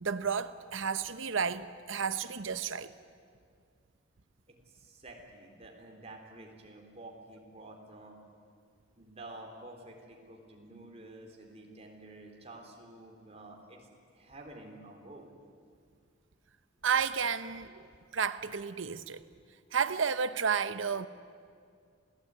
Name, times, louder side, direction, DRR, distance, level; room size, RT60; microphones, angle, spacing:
voice 1, 0.0-2.9 16.8-19.2 19.7-21.1, right 6 dB, 75° right, 0.8 m, -32 dB
voice 2, 4.7-8.2 9.0-13.9 14.1-15.3, right 2 dB, 30° right, 3.8 m, -50 dB
27.0 x 17.5 x 9.6 m
head